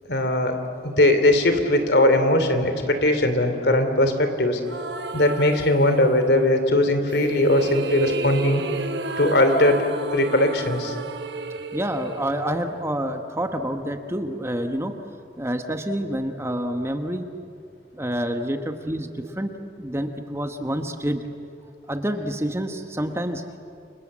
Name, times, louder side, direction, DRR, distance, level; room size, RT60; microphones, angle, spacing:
voice 1, 0.1-0.5 0.8-4.6 5.1-8.6 9.2-9.8 10.1-10.9, left 1 dB, 70° left, 7 dB, 3.0 m, -19 dB
sound 1, 4.7-6.4 7.1-13.2, right 3 dB, 75° right, 1.3 m, -33 dB
voice 2, 11.7-14.9 15.4-17.3 17.9-19.5 19.8-21.2 21.6-23.6, equal, 15° right, 6 dB, 1.3 m, -28 dB
29.5 x 26.0 x 7.5 m, 2.5 s
head